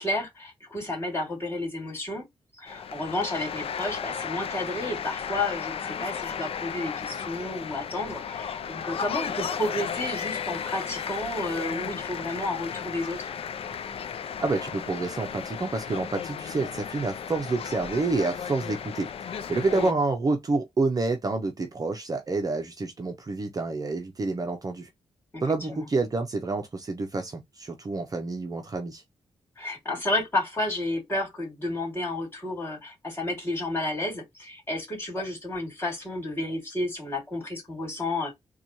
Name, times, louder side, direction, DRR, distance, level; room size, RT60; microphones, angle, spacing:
voice 1, 0.0-2.3 2.6-13.3 19.7-19.9 25.3-25.4 25.7-25.8 29.6-38.3, left 1 dB, 20° left, 2.7 m, -31 dB
sound 1, 2.7-19.9, left 7 dB, 60° left, 0.4 m, -34 dB
voice 2, 14.4-24.9 25.4-29.0, right 3 dB, 35° right, 0.6 m, -28 dB
4.0 x 2.3 x 2.9 m
cardioid pair, 90°, 11 cm